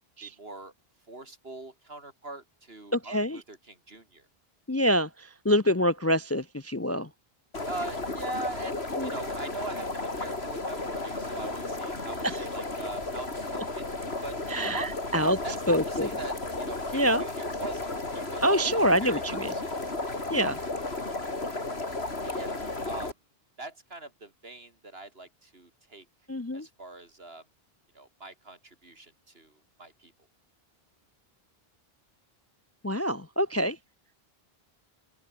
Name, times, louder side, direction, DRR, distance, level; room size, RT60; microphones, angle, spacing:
voice 1, 0.2-0.7 1.1-4.3 7.7-13.9 14.2-14.4 14.7-17.9 18.1-19.8 22.2-22.5 22.8-23.1 23.6-26.1 26.5-27.5 27.9-30.1, right 2 dB, 75° right, 4.2 m, -42 dB
voice 2, 2.9-3.4 4.7-7.1 9.0-9.1 12.2-12.3 14.5-15.4 15.7-16.1 16.9-17.3 18.4-19.5 20.3-20.6 26.3-26.7 32.8-33.8, equal, 20° left, 0.5 m, -26 dB
sound 1, 7.5-23.1, left 2 dB, 90° left, 4.0 m, -34 dB
open air
omnidirectional pair, 1.0 m